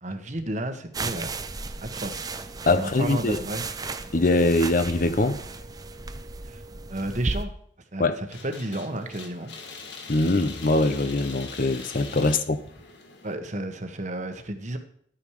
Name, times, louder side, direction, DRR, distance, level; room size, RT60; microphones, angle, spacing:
voice 1, 0.0-1.4 1.8-2.3 2.7-3.6 6.4-6.6 6.9-7.5 7.9-9.5 12.2-12.4 13.2-14.8, right 1 dB, 45° right, 1.3 m, -32 dB
sound 1, 0.9-7.4, right 3 dB, 20° right, 0.6 m, -35 dB
voice 2, 2.7-3.4 4.1-5.4 8.0-8.2 10.1-12.6, left 2 dB, 50° left, 0.8 m, -22 dB
sound 2, 8.3-13.3, left 4 dB, 85° left, 1.9 m, -42 dB
11.5 x 8.8 x 4.8 m
head